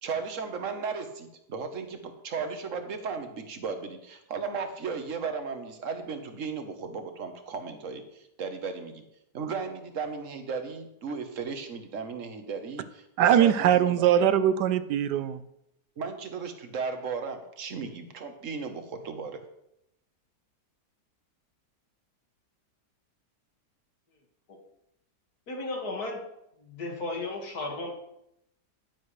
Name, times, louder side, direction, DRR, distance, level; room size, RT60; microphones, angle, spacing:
voice 1, 0.0-9.0 9.3-12.8 13.4-14.0 16.0-19.4, right 5 dB, 50° right, 1.4 m, -35 dB
voice 2, 13.2-15.4, right 10 dB, 80° right, 1.2 m, -21 dB
voice 3, 25.5-26.2 26.6-27.9, left 2 dB, 65° left, 2.5 m, -34 dB
10.5 x 10.5 x 3.3 m
omnidirectional pair, 1.8 m